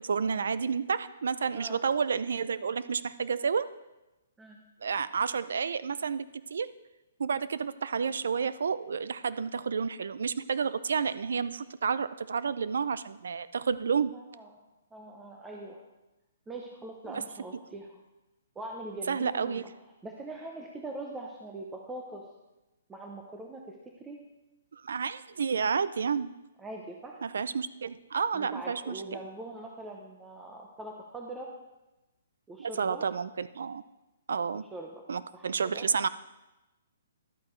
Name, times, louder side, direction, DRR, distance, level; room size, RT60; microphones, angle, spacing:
voice 1, 0.0-3.7 4.8-6.7 7.2-14.1 17.1-17.2 19.1-19.6 24.7-26.3 27.2-29.0 32.6-33.8 34.3-34.6 35.1-36.1, right 6 dB, 75° right, 16 dB, 0.4 m, -30 dB
voice 2, 14.1-14.5 14.9-15.8 16.5-18.0 18.6-19.7 20.0-22.3 22.9-24.2 26.6-27.2 28.3-31.5 32.5-33.1 34.7-35.0 35.3-35.9, right 2 dB, 10° right, 0 dB, 0.7 m, -42 dB
11.5 x 8.5 x 3.2 m, 1.0 s
hypercardioid pair, 155°, 0 cm